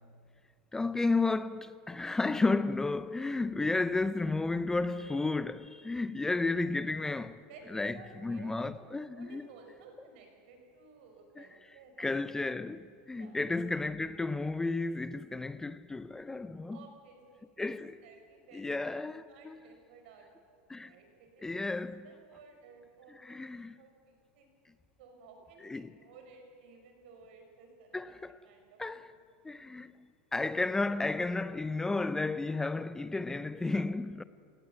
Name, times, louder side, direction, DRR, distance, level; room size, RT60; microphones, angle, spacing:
voice 1, 0.7-7.4 7.7-8.0 8.2-9.5 11.4-11.5 12.0-16.8 17.6-18.0 18.5-19.6 20.7-20.9 21.4-22.1 23.1-23.8 25.6-25.9 27.9-28.4 28.8-29.1 29.4-34.2, left 3 dB, 10° left, 0.4 m, -32 dB
voice 2, 7.5-12.2 13.1-13.4 16.7-18.9 19.3-23.4 23.8-24.5 25.0-28.2 28.4-28.8 29.6-29.7, right 4 dB, 70° right, 5.8 m, -56 dB
18.0 x 16.5 x 9.4 m
supercardioid pair, 140°, 6 cm